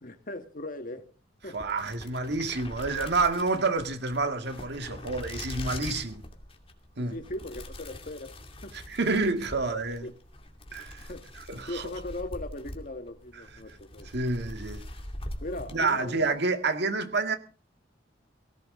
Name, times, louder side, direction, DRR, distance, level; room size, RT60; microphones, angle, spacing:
voice 1, 0.0-1.1 1.4-1.6 7.0-8.8 9.0-9.4 9.6-10.1 11.1-11.3 11.7-14.1 15.4-16.3, left 1 dB, 45° left, 1.8 m, -39 dB
sound 1, 1.4-16.4, left 1 dB, 30° left, 2.6 m, -43 dB
voice 2, 1.5-6.3 7.0-7.2 8.9-10.1 10.7-11.1 11.5-11.9 14.1-14.8 15.7-17.4, right 3 dB, 60° right, 1.8 m, -28 dB
18.5 x 15.5 x 3.8 m
head